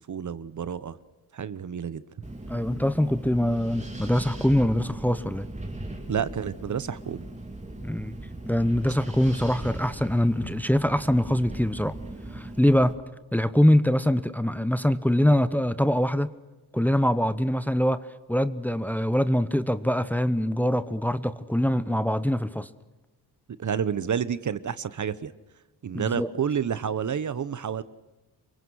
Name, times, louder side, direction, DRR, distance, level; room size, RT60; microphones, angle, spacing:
voice 1, 0.1-1.0 1.3-2.0 6.1-7.3 23.6-25.3 25.8-27.8, right 7 dB, 45° right, 15 dB, 1.0 m, -29 dB
Wind, 2.2-12.9, right 1 dB, 15° right, 3.6 m, -38 dB
voice 2, 2.5-5.5 7.8-8.2 8.4-12.0 12.3-12.9 13.3-16.3 16.7-18.0 18.3-22.7 25.9-26.3, equal, 5° left, 13 dB, 0.9 m, -23 dB
28.0 x 24.0 x 6.4 m, 1.1 s
cardioid pair, 105°, 40 cm